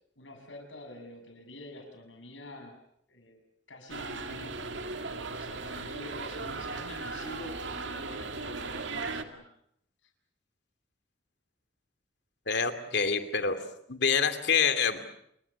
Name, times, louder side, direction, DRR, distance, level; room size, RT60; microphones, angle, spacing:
voice 1, 0.2-2.8 3.1-3.4 3.7-9.5 12.8-13.0, left 1 dB, 85° left, 5 dB, 6.8 m, -47 dB
sound 1, 3.9-9.2, right 3 dB, 75° right, 2.1 m, -37 dB
voice 2, 12.5-13.6 13.9-15.0, left 6 dB, 65° left, 9 dB, 2.6 m, -26 dB
28.5 x 22.0 x 7.0 m, 0.71 s
head